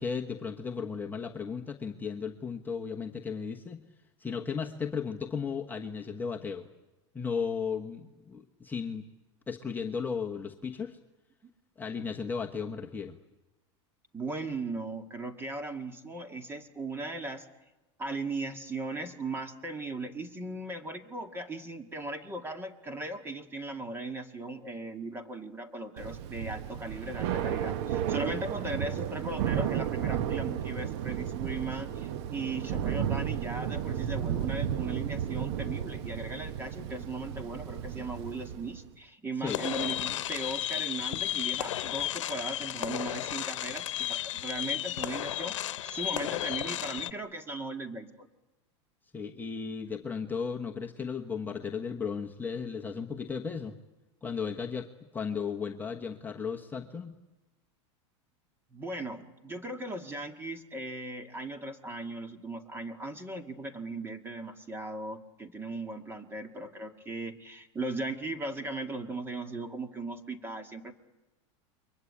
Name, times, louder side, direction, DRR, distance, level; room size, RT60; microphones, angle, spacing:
voice 1, 0.0-3.8 4.2-6.7 7.1-9.0 9.5-11.0 11.8-13.2 39.4-39.6 49.1-53.8 54.2-57.2, left 6 dB, 10° left, 0 dB, 1.2 m, -35 dB
voice 2, 14.1-17.5 18.0-45.6 45.8-48.3 58.7-70.9, right 2 dB, 15° right, 7 dB, 2.0 m, -38 dB
Thunder / Rain, 26.0-38.9, right 10 dB, 60° right, 1.1 m, -33 dB
sound 1, 39.5-47.1, left 13 dB, 90° left, 0.9 m, -33 dB
29.0 x 23.0 x 8.7 m, 1.0 s
supercardioid pair, 135°, 15 cm